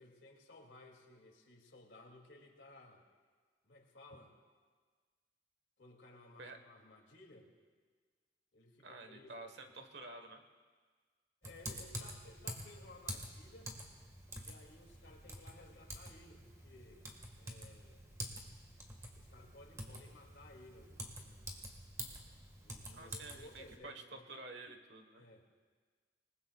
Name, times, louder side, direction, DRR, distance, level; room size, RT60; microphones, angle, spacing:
voice 1, 0.0-3.0 3.6-4.3 5.8-7.5 8.5-9.6 11.4-13.7 14.4-17.1 17.3-18.0 19.2-21.7 22.6-24.2 25.1-25.4, left 2 dB, 80° left, 1 dB, 2.5 m, -58 dB
voice 2, 8.8-10.4 22.9-25.2, right 2 dB, 65° right, 6 dB, 1.3 m, -50 dB
Typing, 11.4-23.8, right 1 dB, 15° right, 1.6 m, -48 dB
26.5 x 20.0 x 2.4 m, 1.5 s
head